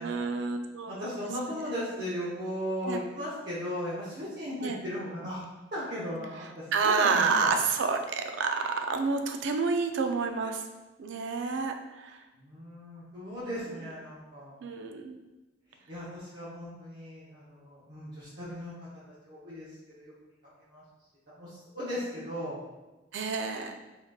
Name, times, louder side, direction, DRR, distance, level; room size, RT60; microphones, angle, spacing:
voice 1, 0.0-1.1 2.8-3.0 4.6-4.8 6.7-10.6 11.0-12.2 14.6-15.2 23.1-23.7, right 4 dB, 70° right, 5 dB, 0.4 m, -29 dB
voice 2, 0.9-5.4 5.7-7.5 12.3-14.7 15.9-18.7 19.3-19.7 20.0-20.1 20.7-20.8 21.3-22.6, equal, 55° right, -9 dB, 0.8 m, -37 dB
3.8 x 3.7 x 2.3 m, 1.1 s
head